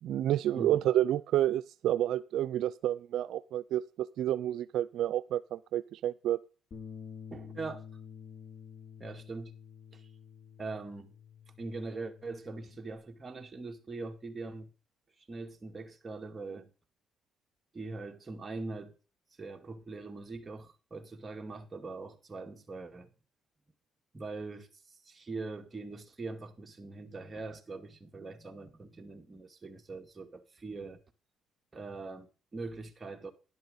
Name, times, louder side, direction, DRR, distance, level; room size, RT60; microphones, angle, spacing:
voice 1, 0.0-6.4, right 12 dB, 80° right, 0.5 m, -30 dB
Bass guitar, 6.7-13.0, left 7 dB, 55° left, 5.4 m, -49 dB
voice 2, 7.3-7.8 9.0-9.5 9.9-10.1 10.6-11.1 11.6-14.7 15.3-16.7 17.7-19.0 19.4-23.1 24.1-31.0 31.7-33.3, right 3 dB, 25° right, 2.4 m, -42 dB
12.5 x 11.0 x 4.0 m
cardioid pair, 90°, 0 cm